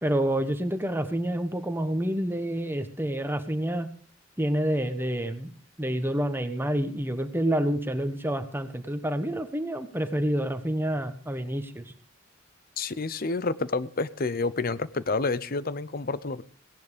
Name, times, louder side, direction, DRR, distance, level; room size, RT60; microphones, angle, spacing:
voice 1, 0.0-3.9 4.4-5.5 5.8-11.9, right 1 dB, 10° right, 8 dB, 1.3 m, -28 dB
voice 2, 12.8-16.4, left 3 dB, 45° left, 16 dB, 0.8 m, -29 dB
18.0 x 10.5 x 5.1 m, 0.40 s
head